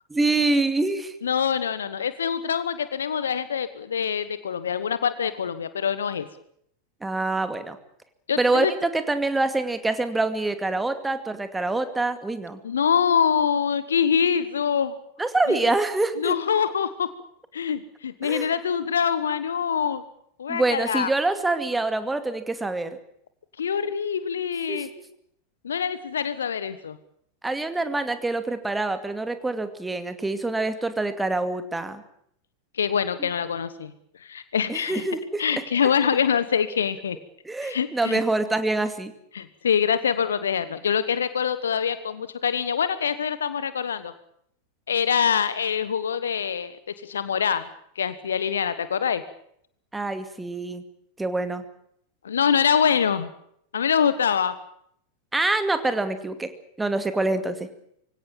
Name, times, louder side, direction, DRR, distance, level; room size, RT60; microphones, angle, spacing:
voice 1, 0.1-1.2 7.0-7.8 8.4-12.6 15.2-16.4 18.2-18.5 20.5-22.9 24.7-24.9 27.4-32.0 33.2-33.3 34.7-35.4 37.4-39.1 49.9-50.8 51.2-51.6 55.3-56.5 56.8-57.7, right 2 dB, 10° right, 10 dB, 2.3 m, -25 dB
voice 2, 1.2-6.3 8.3-8.7 12.6-15.0 15.5-15.6 16.2-17.1 17.5-20.0 20.4-21.1 23.6-24.9 25.6-27.0 32.7-33.9 34.2-35.0 35.4-37.2 37.6-38.2 39.3-44.1 44.9-46.7 47.0-47.7 48.0-49.2 52.2-53.3 53.7-54.5, left 7 dB, 65° left, 14 dB, 1.2 m, -24 dB
24.0 x 17.0 x 8.8 m, 0.70 s
figure-of-eight pair, 90°, 0 cm